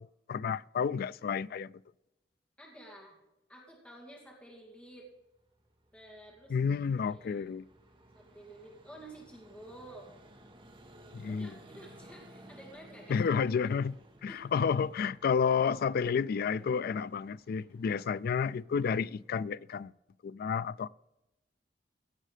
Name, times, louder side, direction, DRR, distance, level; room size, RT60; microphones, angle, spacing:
voice 1, 0.0-1.7 6.5-7.6 11.1-11.5 13.1-14.0 14.2-19.9 20.2-20.9, left 6 dB, 55° left, 0.3 m, -31 dB
voice 2, 2.6-3.2 3.5-5.1 5.9-6.6 7.0-7.5 8.1-10.1 11.3-13.3 14.3-14.7, right 1 dB, 5° left, 2.3 m, -51 dB
Vehicle, 5.0-19.7, right 1 dB, 30° right, 1.4 m, -58 dB
16.5 x 7.5 x 5.0 m
head